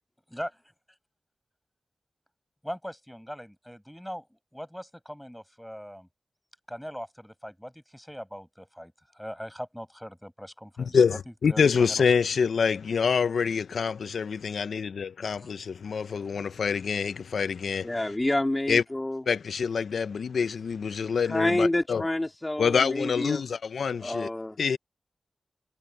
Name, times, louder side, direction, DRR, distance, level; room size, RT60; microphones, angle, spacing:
voice 1, 2.6-6.1 6.7-12.3 15.2-15.5 15.8-15.9, equal, 5° left, 7.5 m, -41 dB
voice 2, 10.9-17.9 18.7-18.8 19.3-22.0 22.6-24.3 24.6-24.8, left 6 dB, 85° left, 0.5 m, -26 dB
voice 3, 17.8-19.2 21.2-23.4 24.0-24.6, left 1 dB, 25° left, 2.1 m, -28 dB
cardioid pair, 40°, 0 cm